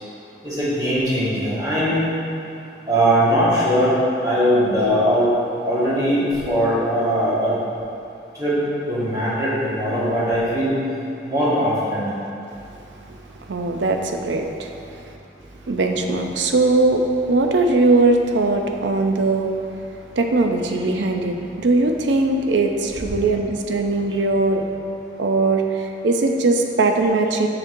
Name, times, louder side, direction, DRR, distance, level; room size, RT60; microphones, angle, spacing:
voice 1, 0.4-2.0 2.9-3.9 4.2-5.3 5.6-7.5 8.4-8.6 8.9-10.7 11.2-12.1, equal, 20° right, -9 dB, 1.4 m, -20 dB
voice 2, 13.5-14.7 15.7-19.5 20.2-24.6 25.2-27.5, right 2 dB, 85° right, 4 dB, 0.5 m, -20 dB
6.4 x 6.0 x 2.6 m, 2.5 s
head